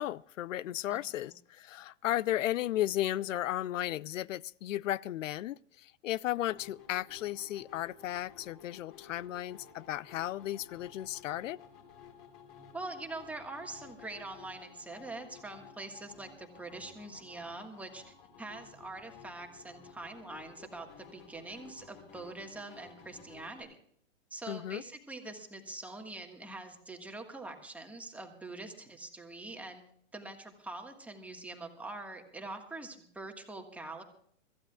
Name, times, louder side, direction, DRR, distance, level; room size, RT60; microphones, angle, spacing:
voice 1, 0.0-11.6 24.5-24.8, left 13 dB, 85° left, 0.5 m, -34 dB
voice 2, 0.9-1.3 12.7-23.7 24.3-29.8 30.1-34.0, right 2 dB, 5° right, 1.5 m, -44 dB
sound 1, 6.5-23.6, left 7 dB, 50° left, 4.8 m, -55 dB
25.5 x 14.5 x 2.3 m
hypercardioid pair, 150°, 37 cm